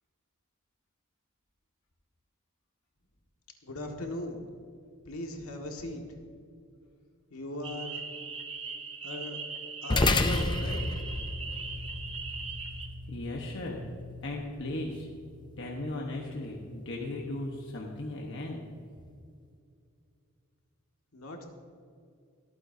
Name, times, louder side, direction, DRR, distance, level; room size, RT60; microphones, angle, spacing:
voice 1, 3.6-4.4 5.1-6.0 7.3-8.0 9.0-9.4 9.8-11.0 21.1-21.4, left 1 dB, 75° left, 2 dB, 1.8 m, -38 dB
sound 1, 7.6-12.9, right 5 dB, 25° right, 0.9 m, -40 dB
sound 2, 9.9-18.6, left 2 dB, 20° left, 0.5 m, -34 dB
voice 2, 13.1-13.9 14.2-15.1 15.6-18.6, left 2 dB, 55° left, -1 dB, 1.2 m, -37 dB
24.0 x 9.1 x 2.7 m, 2.4 s
head